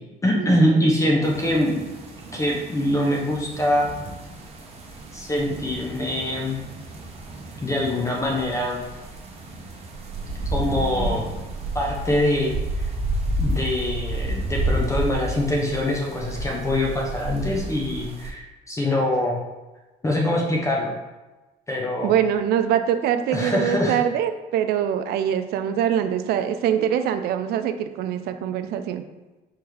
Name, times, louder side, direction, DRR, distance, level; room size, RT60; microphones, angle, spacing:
voice 1, 0.2-1.8 2.3-3.9 5.1-6.6 7.6-8.8 10.5-11.2 11.7-12.9 13.4-19.4 20.0-21.0 21.7-22.1 23.3-24.0, left 1 dB, 15° left, -2 dB, 0.7 m, -23 dB
sound 1, 1.2-18.3, right 1 dB, 40° right, 0.9 m, -31 dB
voice 2, 22.0-29.0, right 9 dB, 70° right, 9 dB, 0.4 m, -23 dB
4.7 x 3.5 x 3.2 m, 1.1 s
cardioid pair, 110°, 17 cm